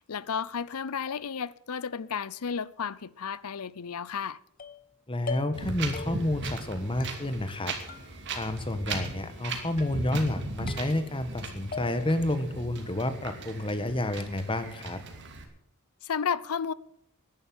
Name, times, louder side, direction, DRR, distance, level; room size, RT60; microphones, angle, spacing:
voice 1, 0.1-4.4 16.0-16.7, left 6 dB, 85° left, 0.6 m, -32 dB
african finger piano, 4.6-4.9 5.3-5.7 5.9-6.5 7.0-7.6 7.9-8.6 8.9-9.4 9.8-10.3 10.7-11.4 11.7-12.3, left 5 dB, 40° left, 1.2 m, -42 dB
voice 2, 5.1-7.7 8.3-15.0, left 1 dB, 25° left, 1.4 m, -30 dB
Wind, 5.5-15.4, right 2 dB, 55° right, 2.6 m, -38 dB
11.0 x 10.5 x 9.5 m
head